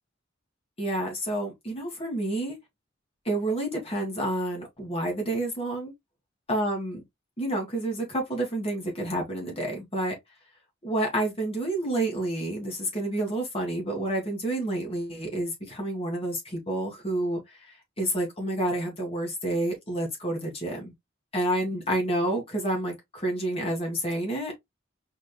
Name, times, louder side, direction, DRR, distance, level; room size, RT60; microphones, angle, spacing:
voice 1, 0.8-2.6 3.3-5.9 6.5-7.0 7.4-10.2 10.8-17.4 18.0-20.9 21.3-24.6, right 1 dB, 30° left, 2.4 m, -29 dB
4.8 x 4.5 x 2.2 m
head